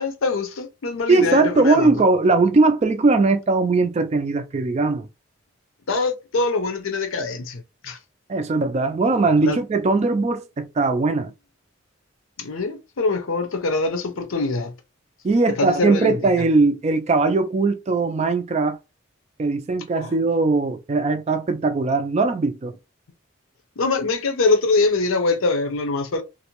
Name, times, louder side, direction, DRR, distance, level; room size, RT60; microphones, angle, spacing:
voice 1, 0.0-1.9 5.9-8.0 9.4-9.6 12.4-14.7 15.6-16.5 20.0-20.1 23.8-26.2, left 3 dB, 85° left, 0.6 m, -23 dB
voice 2, 1.1-5.1 8.3-11.3 15.2-18.8 19.4-22.7, right 3 dB, 30° right, 0.3 m, -20 dB
2.6 x 2.0 x 2.9 m
head